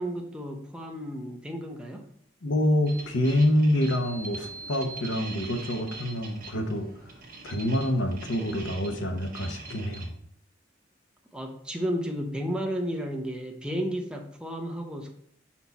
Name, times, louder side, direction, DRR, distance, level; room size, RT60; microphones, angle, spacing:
voice 1, 0.0-2.1 11.3-15.1, equal, 5° right, 2 dB, 0.6 m, -33 dB
voice 2, 2.4-6.9 7.4-10.1, left 1 dB, 75° left, 4 dB, 0.9 m, -26 dB
sound 1, 2.9-10.1, right 3 dB, 45° right, 1.2 m, -43 dB
5.6 x 4.5 x 4.0 m, 0.68 s
head